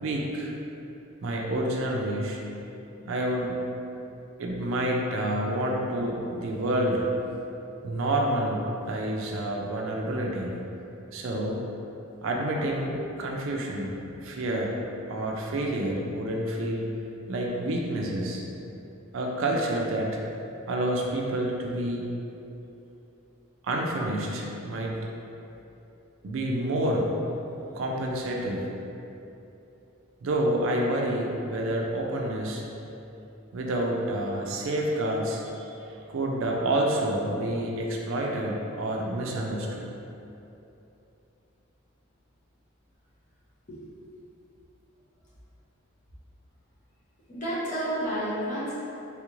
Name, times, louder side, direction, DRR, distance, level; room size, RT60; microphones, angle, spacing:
voice 1, 0.0-0.5 1.2-2.4 3.1-3.6 4.4-7.1 7.8-10.6 11.1-11.6 12.2-13.9 14.2-14.8 15.1-16.9 17.3-18.4 19.1-20.2 20.7-22.1 23.6-25.0 26.2-27.1 27.7-28.7 30.2-32.6 33.5-39.8, right 1 dB, 65° right, -1 dB, 0.4 m, -28 dB
voice 2, 2.8-3.1 4.0-4.2 43.7-43.8 47.3-48.7, right 1 dB, 35° left, -8 dB, 0.7 m, -32 dB
3.4 x 2.4 x 3.0 m, 2.9 s
head